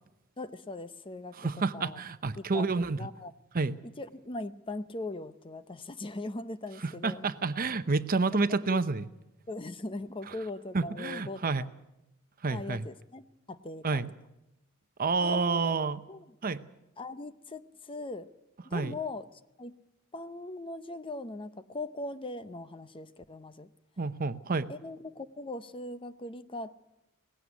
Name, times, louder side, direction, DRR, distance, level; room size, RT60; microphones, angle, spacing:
voice 1, 0.4-2.0 2.4-3.3 4.0-7.2 8.5-8.8 9.5-11.4 12.5-14.0 15.2-15.8 16.1-16.3 17.0-18.3 18.6-19.2 19.6-19.8 20.1-23.7 24.7-26.7, left 2 dB, 25° left, 12 dB, 0.7 m, -40 dB
voice 2, 1.4-3.1 3.5-3.8 6.8-9.1 10.7-11.7 12.4-12.9 13.8-14.1 15.0-16.0 16.4-16.6 18.7-18.9 24.0-24.7, right 3 dB, 40° right, 12 dB, 0.8 m, -29 dB
19.0 x 16.0 x 9.5 m, 0.89 s
head